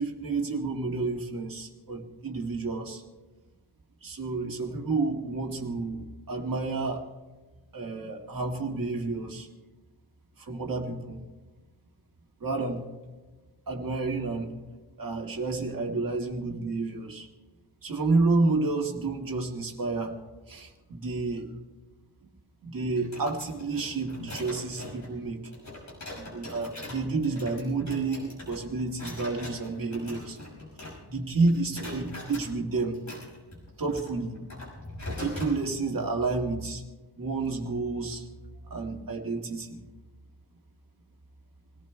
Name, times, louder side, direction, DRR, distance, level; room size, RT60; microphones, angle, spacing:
voice 1, 0.0-3.0 4.0-7.1 7.7-9.5 10.4-11.2 12.4-12.8 13.7-14.5 15.0-17.3 17.8-20.1 20.5-21.5 22.6-25.4 26.1-30.4 31.1-33.0 33.8-34.4 35.2-36.8 37.2-38.3 38.7-39.8, right 3 dB, 55° right, 1 dB, 2.0 m, -30 dB
sound 1, 23.0-31.2 31.5-32.5 32.9-35.6, left 2 dB, 40° left, 5.9 m, -42 dB
28.0 x 18.0 x 2.3 m, 1.2 s
wide cardioid pair, 145°, 41 cm